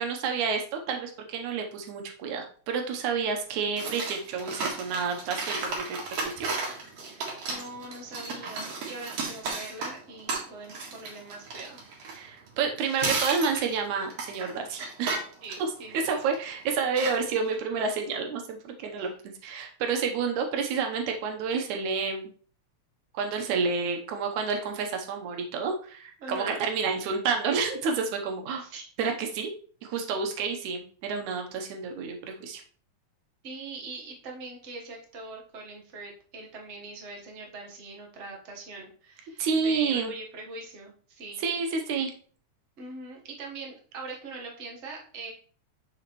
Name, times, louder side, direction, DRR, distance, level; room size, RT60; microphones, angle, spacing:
voice 1, 0.0-6.0 6.4-6.5 12.1-15.1 15.6-19.1 19.4-22.3 23.1-28.6 29.0-29.5 29.8-32.6 39.4-40.1 41.4-42.1, right 5 dB, 85° right, 4 dB, 2.4 m, -29 dB
sound 1, 3.8-12.6 12.9-16.4 16.9-17.5, right 3 dB, 60° right, 2.6 m, -34 dB
voice 2, 7.0-12.4 13.0-13.2 15.4-16.2 19.0-19.1 26.2-26.6 28.6-28.9 33.4-41.4 42.8-45.3, right 3 dB, 45° right, 0 dB, 0.9 m, -42 dB
6.9 x 6.3 x 3.1 m, 0.43 s
omnidirectional pair, 3.4 m